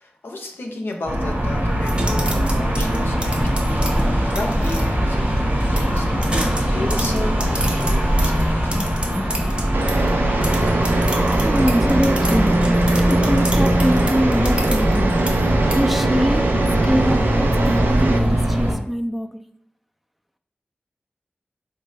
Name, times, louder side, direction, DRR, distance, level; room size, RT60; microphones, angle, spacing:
voice 1, 0.0-3.9 4.3-8.9, left 2 dB, 80° left, 2 dB, 0.6 m, -33 dB
sound 1, 1.1-18.8, equal, 60° right, 1.0 m, -20 dB
sound 2, 1.8-4.8 5.6-10.1 10.4-15.8, right 1 dB, 30° right, 0.7 m, -31 dB
voice 2, 3.7-4.2 8.7-8.9 9.1-9.6 11.4-12.5 13.1-15.1 15.7-16.5 16.8-19.4, equal, 5° right, 7 dB, 0.3 m, -24 dB
sound 3, 9.7-18.2, right 3 dB, 80° right, 0.4 m, -24 dB
3.9 x 2.2 x 3.2 m, 0.69 s
cardioid pair, 45°, 4 cm